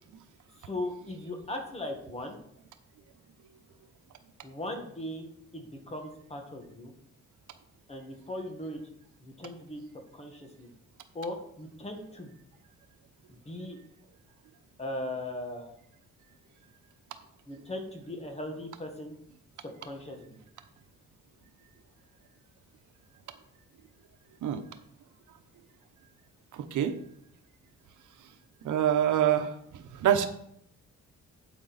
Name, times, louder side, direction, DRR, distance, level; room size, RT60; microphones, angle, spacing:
voice 1, 0.6-2.4 4.4-6.9 7.9-8.8 9.2-9.8 10.1-10.7 11.1-12.4 13.3-13.8 14.8-15.7 17.5-19.1 19.6-20.4, left 1 dB, 20° left, 3 dB, 1.6 m, -38 dB
voice 2, 26.5-27.0 28.6-30.3, right 10 dB, 80° right, 8 dB, 1.0 m, -26 dB
8.9 x 8.4 x 4.1 m, 0.73 s
cardioid pair, 160°, 30 cm